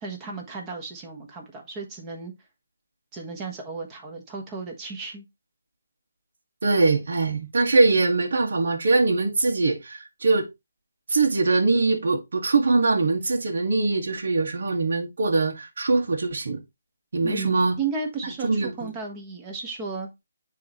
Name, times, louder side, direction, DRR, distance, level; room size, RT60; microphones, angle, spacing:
voice 1, 0.0-2.3 3.1-5.2 17.2-20.1, right 4 dB, 20° right, 1.5 m, -34 dB
voice 2, 6.6-10.5 11.1-16.6 17.1-17.8 18.4-18.9, right 3 dB, 65° right, 1.8 m, -22 dB
9.2 x 3.3 x 3.1 m
hypercardioid pair, 155°, 0 cm